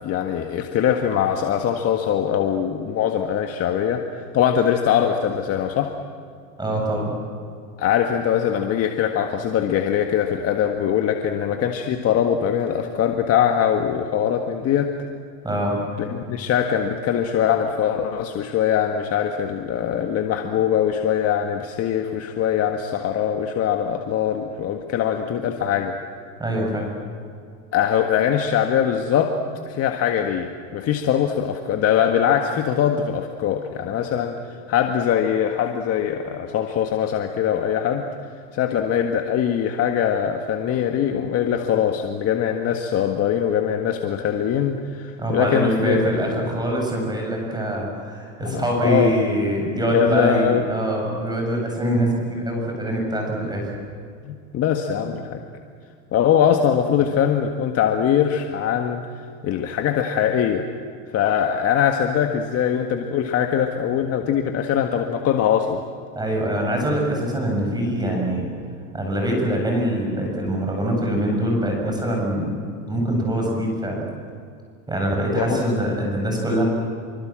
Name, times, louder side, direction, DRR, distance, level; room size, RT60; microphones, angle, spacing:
voice 1, 0.0-5.9 7.8-14.9 16.0-26.0 27.7-29.3 29.6-38.0 38.5-46.2 48.4-49.1 49.6-50.6 54.2-55.4 56.1-59.0 59.4-60.7 61.1-65.8 75.4-75.6, left 9 dB, 35° left, 4 dB, 1.7 m, -22 dB
voice 2, 6.6-7.1 15.4-15.8 26.4-26.9 45.2-53.7 66.2-68.5 68.9-72.6 72.9-74.1 74.9-76.6, right 1 dB, 10° right, 0 dB, 8.0 m, -24 dB
26.0 x 24.5 x 7.6 m, 2.3 s
supercardioid pair, 115°, 40 cm